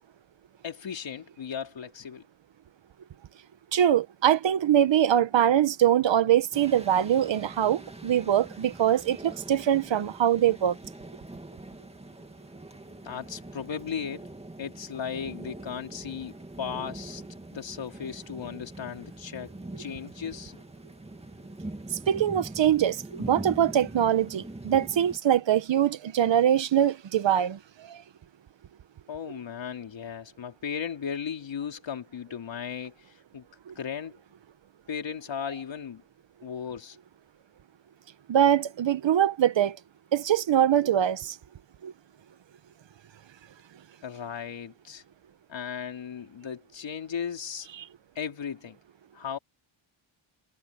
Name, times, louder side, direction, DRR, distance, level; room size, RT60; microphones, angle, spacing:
voice 1, 0.6-2.2 13.0-14.3 14.6-17.2 17.5-19.5 19.8-20.6 29.1-33.4 33.8-34.2 34.9-36.0 36.4-37.0 44.0-45.0 45.5-47.7 48.2-48.8 49.1-49.4, left 7 dB, 60° left, 4.2 m, -36 dB
voice 2, 3.7-10.8 21.9-28.0 33.7-33.8 38.3-39.8 40.1-41.4 41.8-41.9 47.8-47.9, right 10 dB, 60° right, 1.4 m, -23 dB
sound 1, 6.5-25.2, right 2 dB, 10° right, 2.3 m, -43 dB
cardioid pair, 75°, 50 cm